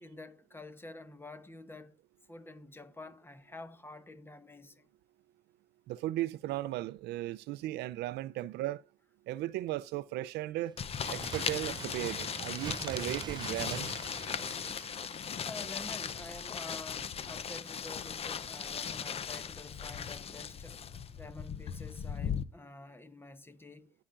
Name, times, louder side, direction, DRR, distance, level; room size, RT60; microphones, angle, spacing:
voice 1, 0.0-2.0 2.3-4.9 15.4-20.8 21.2-23.9, left 2 dB, 15° left, 1.0 m, -48 dB
voice 2, 5.9-8.8 9.3-10.7 11.1-13.9, right 15 dB, 80° right, 0.5 m, -36 dB
Bird, 10.7-16.3 16.6-16.7, right 7 dB, 25° right, 0.3 m, -45 dB
sound 1, 10.8-22.4, left 7 dB, 35° left, 0.6 m, -38 dB
17.0 x 5.8 x 2.5 m
cardioid pair, 110°, 17 cm